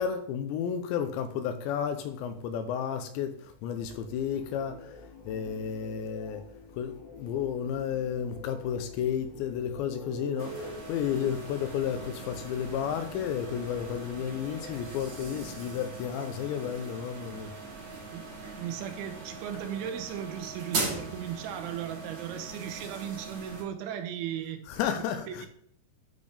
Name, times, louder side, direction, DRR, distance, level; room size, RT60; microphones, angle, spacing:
voice 1, 0.0-6.5 6.7-17.6 24.7-25.5, left 8 dB, 80° left, 2.7 m, -32 dB
sound 1, 3.8-15.5, left 2 dB, 40° left, 1.9 m, -47 dB
sound 2, 10.4-23.6, right 3 dB, 50° right, 1.7 m, -40 dB
voice 2, 18.1-24.6 25.3-25.5, right 9 dB, 80° right, 3.1 m, -37 dB
12.0 x 4.2 x 3.3 m
omnidirectional pair, 5.4 m